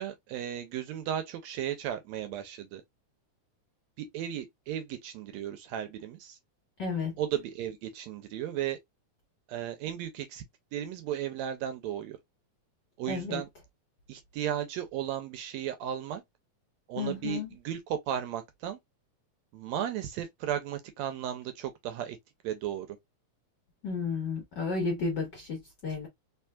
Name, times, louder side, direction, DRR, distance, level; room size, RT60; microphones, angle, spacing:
voice 1, 0.0-2.8 4.0-6.4 7.2-8.8 9.5-10.4 10.7-12.2 13.0-13.5 14.1-16.2 16.9-18.8 19.5-22.2 22.4-22.9, right 10 dB, 80° right, 1.7 m, -35 dB
voice 2, 6.8-7.2 13.1-13.4 17.0-17.5 23.8-26.1, left 4 dB, 60° left, 1.1 m, -32 dB
4.4 x 3.1 x 2.3 m
omnidirectional pair, 3.4 m